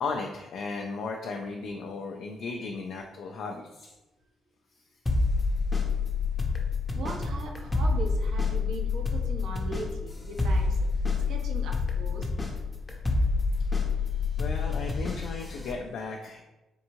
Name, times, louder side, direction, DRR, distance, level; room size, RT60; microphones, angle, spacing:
voice 1, 0.0-3.9 14.4-16.4, left 4 dB, 75° left, 1 dB, 0.4 m, -35 dB
sound 1, 5.1-15.7, left 4 dB, 20° left, 0.6 m, -28 dB
voice 2, 6.9-10.8 11.3-12.3, right 3 dB, 80° right, 2 dB, 0.7 m, -39 dB
4.4 x 2.6 x 2.9 m, 1.0 s
cardioid pair, 90°, 0 cm